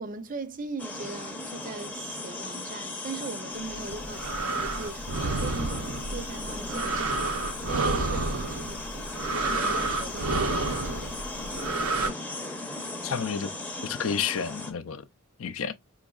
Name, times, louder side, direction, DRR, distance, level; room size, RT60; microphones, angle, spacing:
voice 1, 0.0-7.2 7.7-9.1 9.4-11.3, right 3 dB, 40° right, 0.6 m, -40 dB
sound 1, 0.8-14.7, left 2 dB, 5° left, 0.6 m, -37 dB
sound 2, 3.7-12.1, right 3 dB, 80° right, 0.7 m, -30 dB
voice 2, 13.0-13.5 13.8-15.0 15.4-15.7, left 7 dB, 65° left, 0.5 m, -30 dB
5.3 x 3.9 x 2.3 m
head